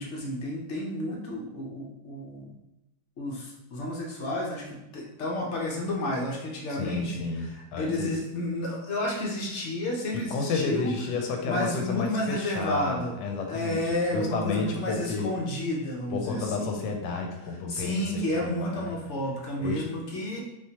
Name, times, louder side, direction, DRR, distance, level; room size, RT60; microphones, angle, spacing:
voice 1, 0.0-2.5 3.2-7.1 7.4-10.9 11.4-13.2 13.5-16.9 17.7-20.4, left 1 dB, 60° left, -2 dB, 0.8 m, -31 dB
voice 2, 6.8-8.2 10.1-13.8 14.1-15.4 16.1-19.0 19.6-19.9, left 4 dB, 80° left, 2 dB, 1.2 m, -31 dB
3.6 x 2.9 x 2.8 m, 0.92 s
omnidirectional pair, 1.9 m